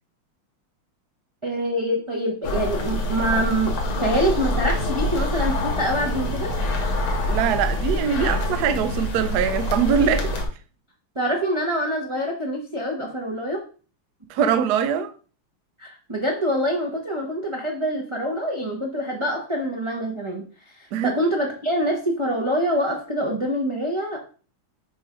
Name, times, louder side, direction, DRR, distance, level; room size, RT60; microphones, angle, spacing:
voice 1, 1.4-6.5 11.1-13.6 15.8-20.4 20.7-24.2, equal, 20° right, 0.7 m, -25 dB
sound 1, 2.4-10.4, left 1 dB, 75° left, 2.3 m, -25 dB
voice 2, 7.3-10.4 14.3-15.1 20.9-21.1, right 7 dB, 65° right, 1.0 m, -22 dB
7.1 x 3.3 x 5.1 m
omnidirectional pair, 2.3 m